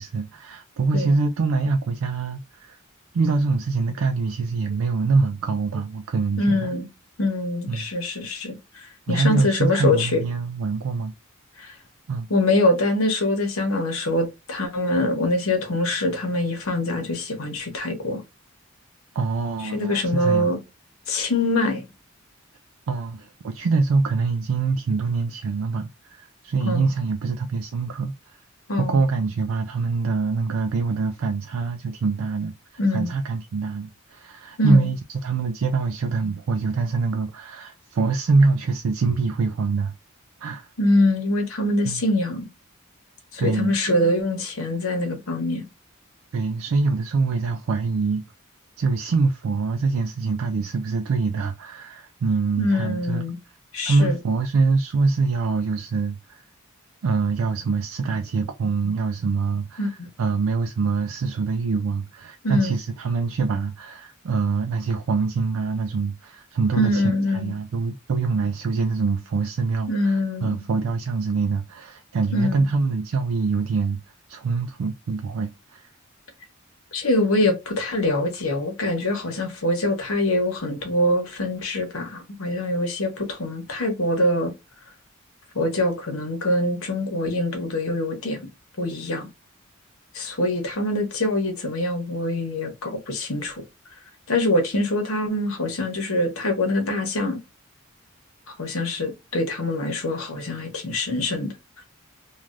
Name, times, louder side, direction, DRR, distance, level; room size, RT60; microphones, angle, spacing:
voice 1, 0.0-2.8 3.1-6.7 7.7-7.9 9.1-11.1 12.1-12.3 19.1-20.5 22.9-28.4 28.8-32.5 32.9-39.9 40.4-40.7 41.8-42.0 43.4-43.8 46.3-48.2 48.8-53.3 53.8-56.4 57.0-67.0 67.3-74.0 74.3-75.9, right 4 dB, 70° right, 0.4 m, -24 dB
voice 2, 6.4-6.9 7.2-10.2 11.6-11.7 12.3-18.2 19.6-20.6 21.1-21.8 26.6-26.9 28.7-29.1 32.8-33.1 34.6-34.9 40.8-42.5 43.3-45.7 52.6-53.4 53.7-54.2 59.8-60.1 62.4-62.8 66.7-67.5 69.9-70.6 72.3-72.7 76.9-84.5 85.5-88.5 88.8-89.3 90.1-93.6 94.3-97.4 98.6-101.5, left 1 dB, 75° left, 1.0 m, -24 dB
3.2 x 2.3 x 2.5 m
head